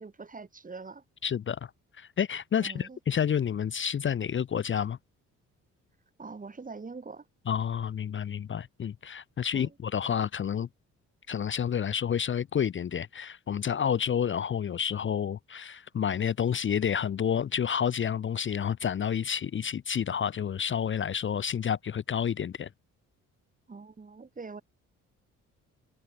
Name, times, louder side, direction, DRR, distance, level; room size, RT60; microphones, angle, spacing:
voice 1, 0.0-1.0 2.6-3.0 6.2-7.3 9.5-9.7 23.7-24.6, right 4 dB, 25° right, 3.6 m, -43 dB
voice 2, 1.2-1.7 2.0-5.0 7.5-10.7 11.3-22.7, left 8 dB, 40° left, 0.8 m, -29 dB
cardioid pair, 90°, 30 cm